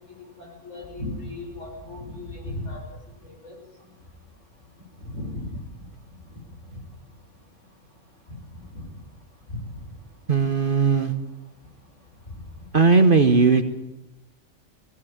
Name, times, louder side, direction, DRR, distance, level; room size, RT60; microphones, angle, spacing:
voice 1, 0.2-2.8 3.4-3.6 5.0-5.5 9.5-9.6, left 2 dB, 60° left, -1 dB, 7.0 m, -35 dB
voice 2, 10.3-11.1 12.7-13.6, right 4 dB, 40° right, 8 dB, 1.3 m, -17 dB
18.5 x 16.5 x 9.3 m, 0.94 s
omnidirectional pair, 1.4 m